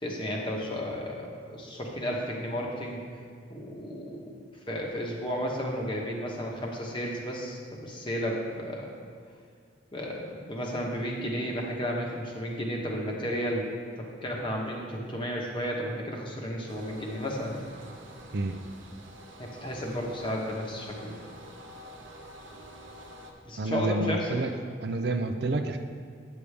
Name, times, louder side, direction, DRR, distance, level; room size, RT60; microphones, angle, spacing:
voice 1, 0.0-3.0 3.5-4.3 4.7-8.9 9.9-13.7 14.0-17.6 19.4-21.2 23.4-24.5, equal, 25° left, -1 dB, 1.1 m, -33 dB
sound 1, 16.7-23.3, equal, 85° right, 1.1 m, -47 dB
voice 2, 23.6-24.5 24.8-25.8, right 2 dB, 55° right, 6 dB, 0.5 m, -29 dB
8.5 x 8.2 x 3.4 m, 2.2 s
head